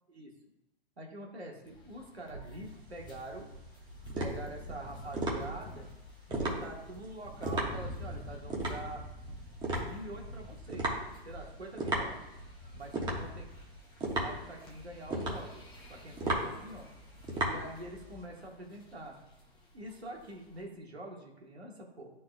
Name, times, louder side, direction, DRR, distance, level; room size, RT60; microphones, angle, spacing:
voice 1, 1.0-3.5 4.1-5.9 6.3-9.0 9.8-10.9 11.2-12.2 12.7-13.5 14.2-15.6 15.9-16.9 17.4-19.2 19.7-22.1, right 1 dB, 85° right, 0 dB, 1.6 m, -45 dB
sound 1, 1.6-20.6, equal, 15° left, 0.9 m, -48 dB
sound 2, 2.7-18.2, right 2 dB, 15° right, 1.2 m, -36 dB
10.5 x 4.2 x 2.2 m, 0.93 s
figure-of-eight pair, 120°, 31 cm